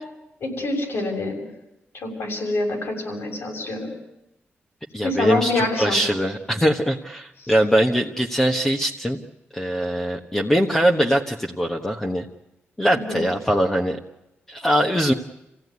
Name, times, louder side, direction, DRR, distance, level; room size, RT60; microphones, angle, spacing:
voice 1, 0.4-1.4 1.9-3.9 5.0-6.0 7.4-7.5 12.9-13.3, left 2 dB, 70° left, 2 dB, 6.7 m, -26 dB
voice 2, 4.9-9.2 9.5-12.2 12.8-14.0 14.5-15.1, equal, 10° left, 1 dB, 1.3 m, -22 dB
28.0 x 16.0 x 9.6 m, 0.90 s
wide cardioid pair, 125°, 4 cm